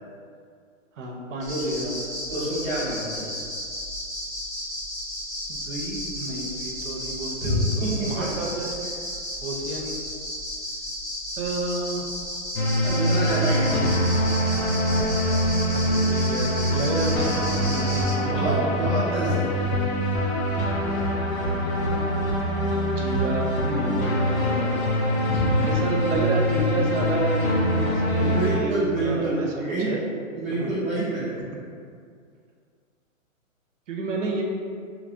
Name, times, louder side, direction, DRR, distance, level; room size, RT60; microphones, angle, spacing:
voice 1, 1.0-2.1 5.5-8.7 9.4-10.0 11.4-12.1 15.2-15.3 15.7-15.8 16.1-18.9 21.5-22.1 22.8-24.8 25.6-29.5 29.8-30.0 30.6-30.7 33.9-34.4, right 2 dB, 65° right, 0 dB, 0.6 m, -30 dB
sound 1, 1.4-18.1, equal, 10° left, 0.8 m, -33 dB
voice 2, 2.3-3.3 7.4-8.3 12.8-14.2 18.2-19.7 25.3-25.7 28.1-29.9 30.3-31.4, right 1 dB, 10° right, -16 dB, 0.4 m, -27 dB
sound 2, 12.6-28.6, equal, 85° left, 0.7 m, -24 dB
2.8 x 2.4 x 2.6 m, 2.2 s
hypercardioid pair, 155°, 40 cm